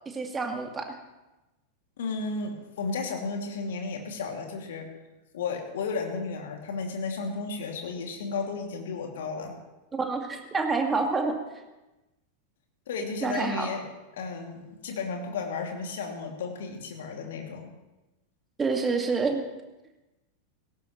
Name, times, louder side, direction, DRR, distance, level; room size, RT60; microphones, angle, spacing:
voice 1, 0.1-1.0 9.9-11.6 13.2-13.7 18.6-19.5, right 4 dB, 15° right, 4 dB, 2.0 m, -28 dB
voice 2, 2.0-4.9 5.3-9.5 12.9-13.8 14.1-17.7, left 4 dB, 60° left, 2 dB, 2.5 m, -33 dB
18.0 x 17.5 x 3.2 m, 1.0 s
figure-of-eight pair, 90°, 0 cm